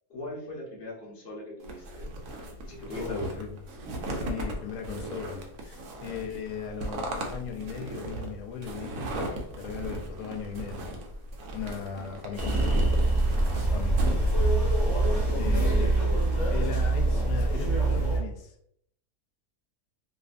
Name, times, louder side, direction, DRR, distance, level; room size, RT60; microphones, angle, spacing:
voice 1, 0.1-2.0 2.7-3.3 14.9-16.2, left 1 dB, 45° left, -4 dB, 1.0 m, -39 dB
sound 1, 1.6-15.3, right 1 dB, 70° right, 0.9 m, -34 dB
voice 2, 3.0-3.5 4.1-11.0 11.5-12.7 13.5-14.0 15.4-16.0 16.5-18.5, left 7 dB, 90° left, 2 dB, 1.1 m, -38 dB
sound 2, 12.4-18.2, right 2 dB, 20° left, 1.0 m, -25 dB
2.6 x 2.5 x 2.4 m, 0.69 s
omnidirectional pair, 1.6 m